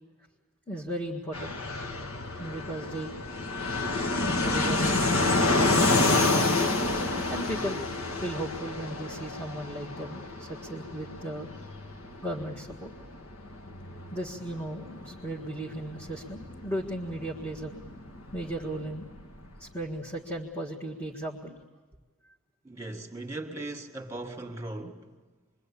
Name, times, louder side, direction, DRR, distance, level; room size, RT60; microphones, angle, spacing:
voice 1, 0.7-1.6 2.4-3.1 4.2-5.1 5.5-6.6 7.3-7.8 8.2-11.5 12.2-12.9 14.1-17.8 18.3-19.1 19.6-21.6, right 1 dB, 10° left, 1.7 m, -36 dB
Fixed-wing aircraft airplane, 1.3-19.7, left 2 dB, 75° left, 1.8 m, -29 dB
voice 2, 22.6-25.1, right 2 dB, 15° right, 2.1 m, -38 dB
27.0 x 22.5 x 8.6 m
head